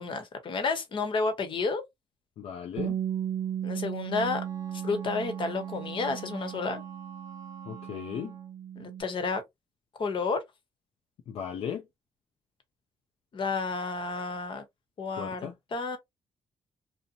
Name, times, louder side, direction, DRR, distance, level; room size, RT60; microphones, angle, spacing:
voice 1, 0.0-1.8 3.6-4.4 4.7-6.8 8.8-9.4 10.0-10.4 13.3-14.6 15.0-16.0, left 4 dB, 55° left, 0.9 m, -31 dB
voice 2, 2.4-3.0 7.7-8.3 11.3-11.8 15.2-15.5, left 8 dB, 75° left, 0.4 m, -36 dB
Bass guitar, 2.8-9.0, right 9 dB, 80° right, 0.4 m, -36 dB
Wind instrument woodwind instrument, 4.2-8.5, right 6 dB, 35° right, 0.8 m, -49 dB
2.7 x 2.1 x 2.5 m
cardioid pair, 90°, 10 cm